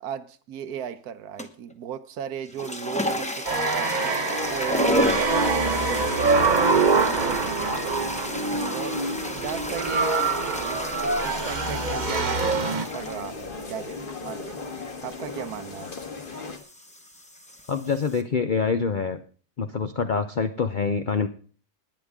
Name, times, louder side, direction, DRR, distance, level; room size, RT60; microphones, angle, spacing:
voice 1, 0.0-4.2 4.5-6.6 6.9-8.3 8.7-10.9 11.2-14.7 15.0-15.9, right 8 dB, 65° right, 13 dB, 1.3 m, -36 dB
sound 1, 1.4-1.7 2.4-18.2, left 1 dB, 5° left, 0.7 m, -33 dB
sound 2, 3.5-12.9, right 4 dB, 35° right, 0.8 m, -24 dB
sound 3, 3.8-16.6, left 4 dB, 30° left, 1.4 m, -37 dB
voice 2, 17.7-19.2 19.6-21.3, left 5 dB, 70° left, 8 dB, 0.4 m, -25 dB
19.0 x 9.9 x 3.6 m, 0.40 s
omnidirectional pair, 1.8 m